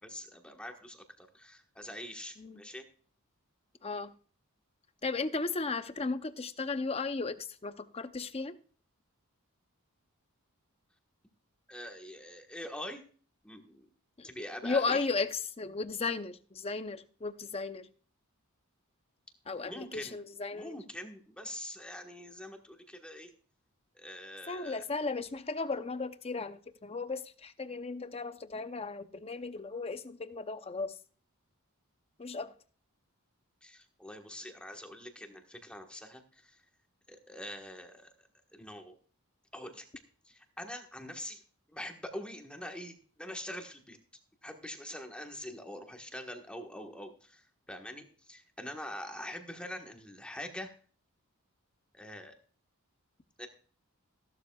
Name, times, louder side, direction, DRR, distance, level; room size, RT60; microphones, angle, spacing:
voice 1, 0.0-2.8 11.7-13.0 13.4-13.9 14.2-15.0 19.6-20.2 20.5-23.3 23.9-24.8 33.6-36.6 37.1-38.9 39.5-39.9 40.2-41.4 41.7-44.0 44.4-50.7 51.9-52.3 53.4-53.5, left 1 dB, 5° left, 1.4 m, -44 dB
voice 2, 3.8-4.1 5.0-8.6 14.2-14.3 14.6-17.9 19.5-20.8 24.5-30.9 32.2-32.5, left 4 dB, 25° left, 0.6 m, -35 dB
16.0 x 12.0 x 2.4 m
head